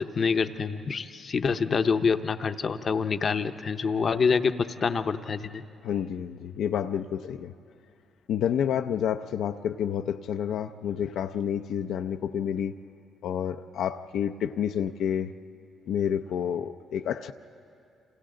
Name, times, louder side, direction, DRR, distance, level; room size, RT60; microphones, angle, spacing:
voice 1, 0.0-5.6, left 5 dB, 45° left, 10 dB, 0.7 m, -26 dB
voice 2, 5.8-7.5 8.3-12.7 13.2-15.3 15.9-17.3, left 9 dB, 75° left, 7 dB, 0.5 m, -29 dB
30.0 x 26.5 x 3.8 m, 2.5 s
cardioid pair, 90°, 0 cm